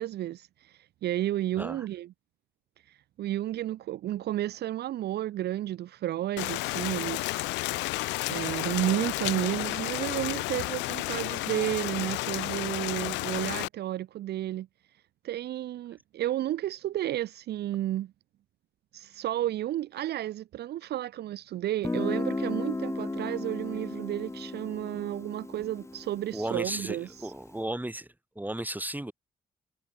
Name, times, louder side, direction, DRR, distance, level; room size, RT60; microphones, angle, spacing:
voice 1, 0.0-2.1 2.9-7.5 8.3-14.7 15.2-18.1 18.9-27.3, right 13 dB, 65° right, 0.7 m, -32 dB
Rain, 6.4-13.7, left 22 dB, 80° left, 0.8 m, -32 dB
Guitar, 21.8-27.4, left 2 dB, 15° left, 0.8 m, -35 dB
voice 2, 26.3-28.1 28.3-29.1, right 1 dB, 10° right, 3.2 m, -34 dB
hypercardioid pair, 45°, 18 cm